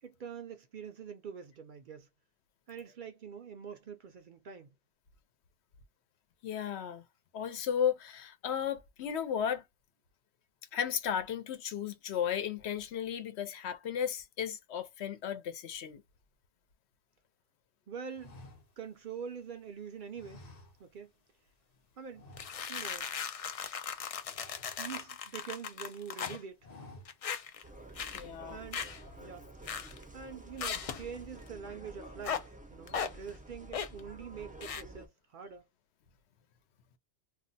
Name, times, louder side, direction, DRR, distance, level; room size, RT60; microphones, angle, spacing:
voice 1, 0.0-2.1 2.7-4.7 17.9-18.3 18.8-20.4 20.8-21.1 22.0-22.3 22.7-23.1 24.8-26.6 28.5-28.8 29.2-29.5 30.1-35.7, right 7 dB, 60° right, 0.6 m, -45 dB
voice 2, 6.4-7.0 7.3-9.6 10.7-16.0 28.1-28.6, left 8 dB, 75° left, 0.9 m, -34 dB
sound 1, 18.1-19.6 20.1-21.2 21.5-21.7 22.1-23.0 23.3-23.5 23.8-25.5 25.9-26.2 26.5-27.4 27.9-28.0 28.7-29.9 30.3-30.7 30.9-31.5, left 2 dB, 45° left, 0.7 m, -55 dB
sound 2, 22.4-26.4 27.0-27.6 28.0-28.2 28.7-29.0 29.7-30.0 30.6-31.0 32.2-32.4 32.9-33.1 33.7-34.0 34.6-34.8, left 7 dB, 60° left, 0.3 m, -37 dB
sound 3, 27.6-35.1, right 2 dB, 10° right, 0.4 m, -50 dB
2.3 x 2.2 x 3.9 m
omnidirectional pair, 1.1 m